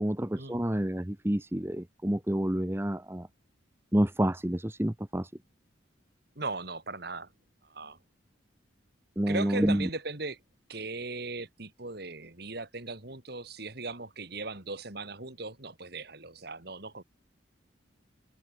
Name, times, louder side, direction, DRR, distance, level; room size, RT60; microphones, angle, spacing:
voice 1, 0.0-3.3 3.9-5.3 9.2-9.9, equal, 15° right, 1.0 m, -28 dB
voice 2, 6.4-7.3 7.6-8.0 9.3-10.4 10.7-17.0, right 3 dB, 55° right, 3.0 m, -38 dB
head